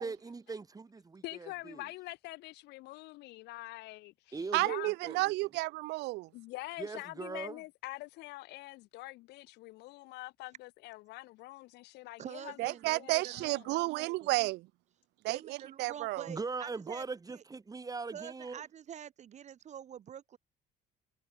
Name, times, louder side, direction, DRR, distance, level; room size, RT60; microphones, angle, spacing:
voice 1, 0.0-1.8 4.3-5.3 6.8-7.6 16.3-18.6, right 4 dB, 20° right, 2.0 m, -41 dB
voice 2, 1.2-4.9 6.3-13.8, left 19 dB, 85° left, 0.9 m, -45 dB
voice 3, 4.5-6.3 12.6-14.7 15.2-16.3, right 21 dB, 90° right, 0.8 m, -32 dB
voice 4, 12.2-14.3 15.3-17.0 17.3-17.4 18.1-20.4, right 9 dB, 45° right, 0.7 m, -46 dB
cardioid pair, 110°, 17 cm